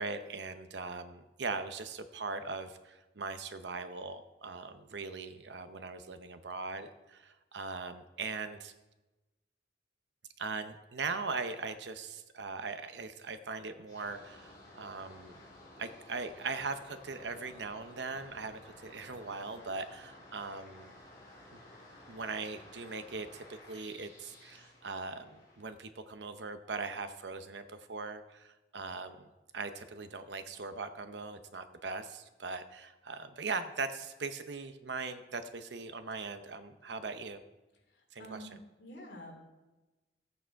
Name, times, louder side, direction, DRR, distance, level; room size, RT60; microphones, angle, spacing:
voice 1, 0.0-8.7 10.4-15.4 15.8-20.9 21.5-21.6 22.1-37.4 38.1-38.5, right 4 dB, 75° right, 9 dB, 0.8 m, -40 dB
sound 1, 13.9-25.7, left 1 dB, 25° left, 3.5 m, -55 dB
voice 2, 37.9-39.4, equal, 70° left, 1 dB, 2.9 m, -49 dB
14.0 x 8.7 x 4.6 m, 1.1 s
head